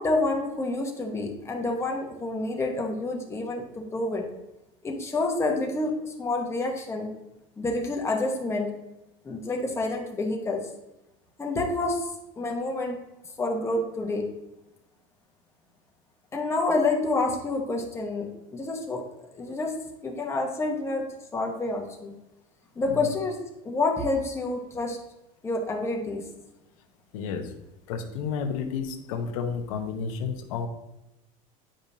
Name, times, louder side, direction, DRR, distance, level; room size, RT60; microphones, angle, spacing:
voice 1, 0.0-4.3 4.8-7.1 7.6-8.7 9.2-10.7 11.4-12.1 12.4-13.0 13.4-14.3 16.3-19.0 19.3-19.7 20.0-21.0 21.3-22.1 22.8-23.4 23.6-25.0 25.4-26.3, left 2 dB, 15° left, 0 dB, 1.2 m, -28 dB
voice 2, 27.1-27.5 27.9-30.7, left 6 dB, 85° left, 5 dB, 0.9 m, -31 dB
8.8 x 5.1 x 2.8 m, 0.94 s
supercardioid pair, 130°, 17 cm